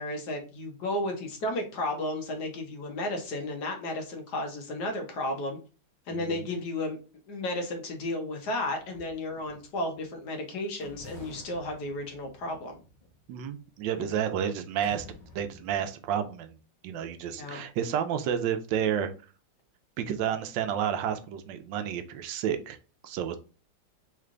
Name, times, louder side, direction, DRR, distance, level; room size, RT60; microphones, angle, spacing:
voice 1, 0.0-5.6 6.1-7.0 7.3-12.8 13.9-14.3 17.3-17.6, left 1 dB, 65° left, 1.5 m, -33 dB
voice 2, 6.1-6.5 13.3-16.6 16.8-19.1 20.0-22.8 23.0-23.4, right 9 dB, 80° right, 1.2 m, -31 dB
sound 1, 8.7-10.1 10.8-14.2 14.8-15.8, left 2 dB, 30° left, 1.0 m, -50 dB
3.8 x 3.3 x 3.7 m
omnidirectional pair, 2.0 m